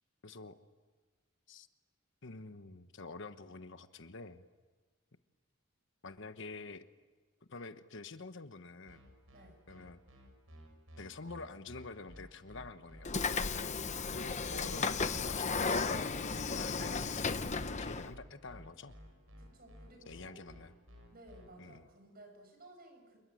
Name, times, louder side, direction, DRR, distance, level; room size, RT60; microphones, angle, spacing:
voice 1, 0.2-0.6 1.5-1.7 2.2-4.4 6.0-6.9 7.5-9.1 9.7-10.0 11.0-13.8 14.1-16.1 16.5-18.9 20.1-20.7 21.6-21.9, left 3 dB, 65° left, 10 dB, 1.2 m, -48 dB
sound 1, 8.9-21.5, equal, 80° right, 7.7 m, -55 dB
Train / Sliding door, 13.0-18.1, left 4 dB, 35° left, 0.9 m, -34 dB
voice 2, 19.4-20.4 21.1-23.2, right 1 dB, 50° right, 5 dB, 6.4 m, -57 dB
28.5 x 22.0 x 9.4 m, 1.4 s
head